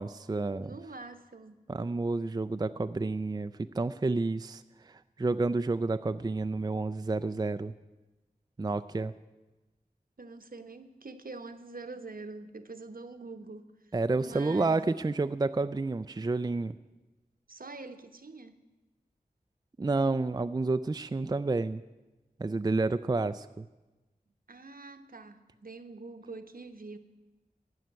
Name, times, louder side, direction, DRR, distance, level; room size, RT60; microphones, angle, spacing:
voice 1, 0.0-0.8 1.7-7.7 8.6-9.1 13.9-16.8 19.8-21.8 22.4-23.7, right 3 dB, 25° right, 11 dB, 0.3 m, -30 dB
voice 2, 0.6-1.6 10.2-13.7 14.2-14.9 17.5-18.6 24.5-27.0, right 3 dB, 70° right, 8 dB, 0.9 m, -45 dB
15.0 x 5.7 x 9.3 m, 1.1 s
wide cardioid pair, 45°, 16 cm